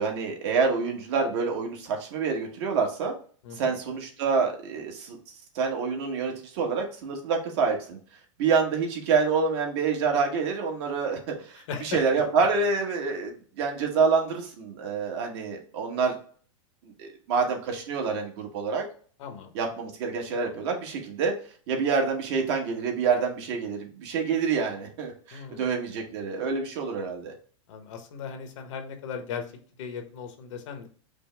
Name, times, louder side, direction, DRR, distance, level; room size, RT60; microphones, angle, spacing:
voice 1, 0.0-3.1 3.5-5.2 5.5-8.0 8.4-16.1 16.8-18.8 19.5-21.3 21.7-27.3, right 5 dB, 55° right, 2 dB, 1.2 m, -27 dB
voice 2, 11.6-12.0 19.2-19.5 25.3-25.7 27.7-29.5 29.8-30.9, left 6 dB, 70° left, 6 dB, 0.9 m, -37 dB
5.1 x 2.0 x 3.3 m, 0.43 s
supercardioid pair, 145°, 17 cm